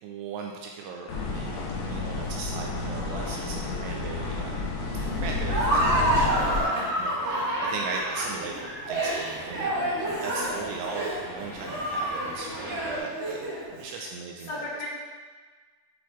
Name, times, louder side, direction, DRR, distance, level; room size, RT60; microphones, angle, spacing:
voice 1, 0.0-4.6 4.9-6.7 7.0-14.6, right 5 dB, 85° right, 1 dB, 2.4 m, -38 dB
sound 1, 1.1-6.6, left 3 dB, 90° left, 3.3 m, -31 dB
sound 2, 4.2-13.0, equal, 55° left, 1.5 m, -45 dB
Laughter, 5.4-13.7, right 1 dB, 55° right, 2.6 m, -28 dB
voice 2, 6.6-7.1 13.8-14.1 14.4-14.9, left 2 dB, 75° left, -8 dB, 3.8 m, -38 dB
8.4 x 4.0 x 3.0 m, 1.5 s
omnidirectional pair, 5.0 m